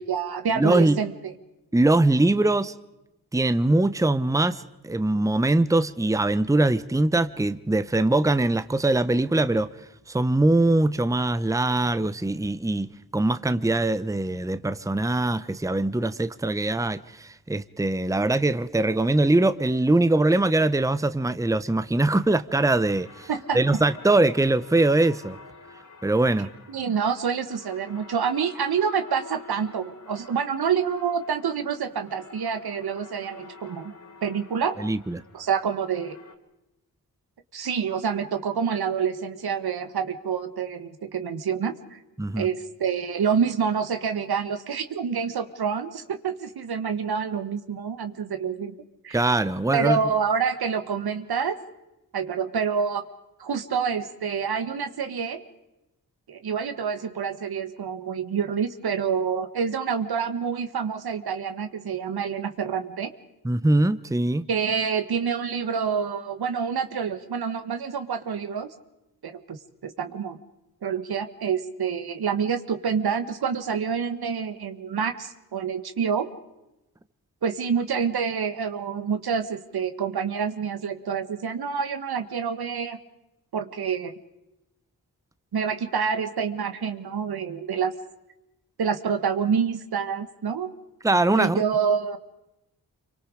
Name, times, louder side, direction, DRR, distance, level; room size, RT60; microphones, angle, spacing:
voice 1, 0.0-1.3 23.3-23.6 26.7-33.9 34.2-34.8 35.3-36.2 37.5-42.0 42.4-48.8 49.0-49.2 49.7-51.6 52.1-53.1 53.4-55.4 56.3-63.1 64.5-68.7 69.2-69.6 69.8-70.4 70.8-76.3 77.4-83.0 83.5-84.1 85.5-87.9 88.8-90.7 91.4-92.2, right 6 dB, 70° right, 1.6 m, -27 dB
voice 2, 0.5-1.0 1.7-2.7 3.3-9.7 10.1-12.9 13.1-23.3 23.5-25.4 26.0-26.5 34.8-35.2 42.2-42.5 49.1-50.0 63.4-64.4 91.0-91.6, right 2 dB, 10° right, 0.9 m, -22 dB
sound 1, 22.6-36.3, left 4 dB, 50° left, 3.1 m, -48 dB
26.5 x 24.0 x 5.0 m
supercardioid pair, 40°, 39 cm